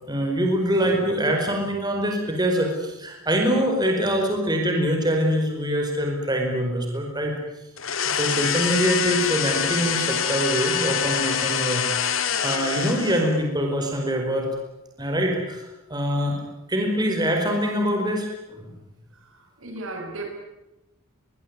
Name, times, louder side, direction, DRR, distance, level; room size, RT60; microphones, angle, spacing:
voice 1, 0.1-7.4 8.1-12.1 12.4-14.5 15.0-15.6 15.9-16.4 16.7-18.7, equal, 20° right, 2 dB, 4.9 m, -24 dB
sound 1, 7.8-13.4, left 8 dB, 65° left, 2.5 m, -25 dB
voice 2, 19.1-20.3, right 2 dB, 65° right, 4 dB, 6.6 m, -36 dB
23.0 x 21.0 x 9.7 m, 0.97 s
head